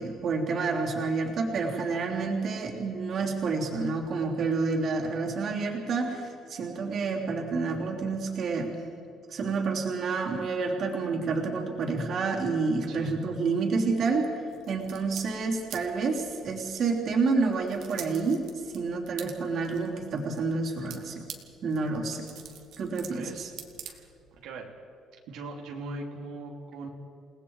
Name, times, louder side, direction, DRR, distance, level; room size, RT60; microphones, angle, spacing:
voice 1, 0.0-8.7 9.3-14.3 14.7-18.5 18.7-21.3 21.6-22.2 22.8-23.5, right 4 dB, 45° right, 0 dB, 3.3 m, -29 dB
voice 2, 12.9-13.3 23.1-23.5 23.8-24.7 25.3-26.9, right 3 dB, 80° right, -1 dB, 2.8 m, -40 dB
sound 1, 14.5-24.4, right 8 dB, 65° right, 2.1 m, -48 dB
29.0 x 19.0 x 4.8 m, 2.7 s
cardioid pair, 165°, 0 cm